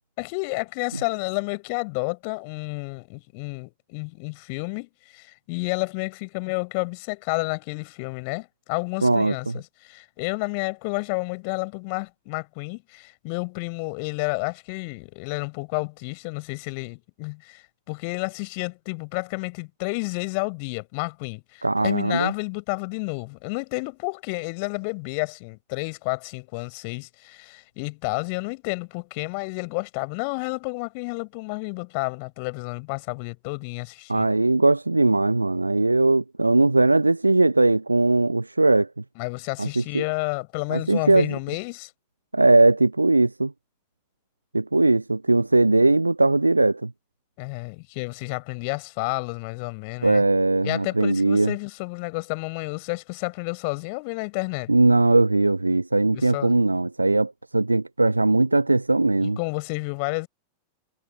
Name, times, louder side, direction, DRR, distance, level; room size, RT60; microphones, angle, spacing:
voice 1, 0.2-34.3 39.2-41.9 47.4-50.2 50.6-54.7 56.1-56.5 59.2-60.3, left 34 dB, 45° left, 4.6 m, -30 dB
voice 2, 9.0-9.6 21.6-22.3 34.1-38.9 39.6-40.0 40.7-41.3 42.3-43.5 44.5-46.9 50.0-51.5 54.7-59.4, right 2 dB, 85° right, 0.9 m, -20 dB
figure-of-eight pair, 90°, 0 cm